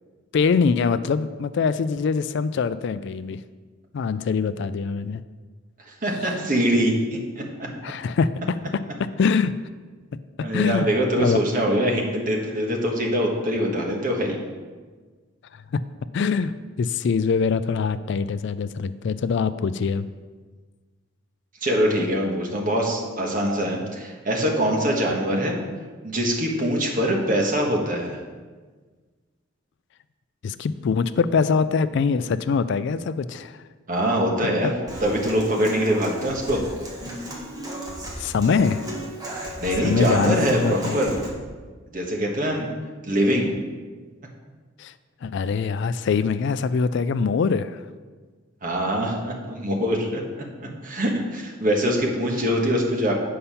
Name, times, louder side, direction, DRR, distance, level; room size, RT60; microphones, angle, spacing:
voice 1, 0.3-3.4 3.9-5.2 7.8-9.5 10.1-10.2 10.5-10.9 11.2-11.4 15.7-15.8 16.1-16.5 16.8-20.1 30.4-33.6 38.2-38.9 39.8-40.9 44.8-44.9 45.2-47.8, left 5 dB, 60° left, 14 dB, 0.3 m, -23 dB
voice 2, 5.9-7.4 10.4-14.4 21.6-25.6 26.0-28.2 33.9-34.7 35.0-36.6 39.6-41.2 41.9-42.7 43.0-43.5 48.6-50.2 50.6-53.1, equal, 40° right, 0 dB, 1.5 m, -23 dB
Human voice / Acoustic guitar, 34.9-41.3, equal, 20° right, 1.6 m, -34 dB
8.5 x 5.6 x 5.6 m, 1.4 s
head